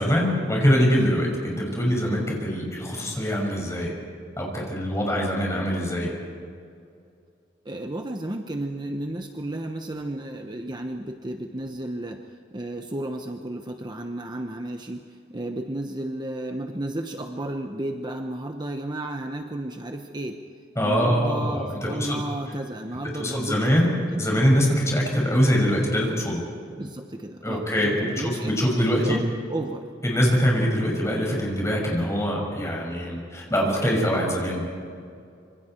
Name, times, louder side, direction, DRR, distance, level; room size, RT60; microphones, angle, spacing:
voice 1, 0.0-3.9 4.4-6.1 20.8-22.2 23.1-23.9 24.2-26.4 27.4-29.2 30.0-34.7, equal, 15° left, -1 dB, 5.9 m, -23 dB
voice 2, 7.6-12.2 12.5-20.4 20.8-24.2 26.8-29.2 29.5-29.9, right 1 dB, 25° right, 4 dB, 1.0 m, -33 dB
26.5 x 25.5 x 4.5 m, 2.4 s
head